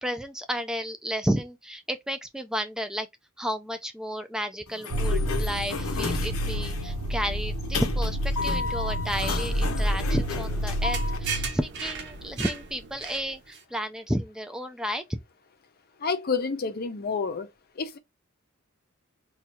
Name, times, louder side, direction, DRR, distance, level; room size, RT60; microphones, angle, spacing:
voice 1, 0.0-3.1 3.4-15.2, equal, 5° right, 0.3 m, -32 dB
Sliding door, 4.7-11.2, left 5 dB, 85° left, 0.7 m, -34 dB
sound 1, 4.9-11.5, equal, 90° right, 0.9 m, -29 dB
sound 2, 10.2-13.6, right 6 dB, 55° right, 0.7 m, -37 dB
voice 2, 16.0-17.5 17.8-18.0, left 5 dB, 45° left, 0.6 m, -29 dB
2.7 x 2.3 x 4.1 m
head